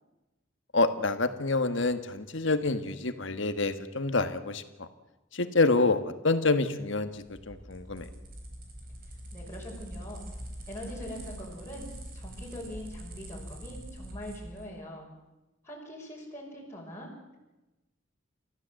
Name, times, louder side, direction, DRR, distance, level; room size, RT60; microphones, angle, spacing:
voice 1, 0.7-4.9 5.3-8.1, left 3 dB, 65° left, 9 dB, 1.6 m, -27 dB
sound 1, 7.0-14.7, right 1 dB, 45° right, 4.6 m, -44 dB
voice 2, 9.3-10.2 10.7-11.9 12.1-15.1 15.6-17.4, equal, 10° left, -4 dB, 5.9 m, -42 dB
29.5 x 14.5 x 7.8 m, 1.0 s
head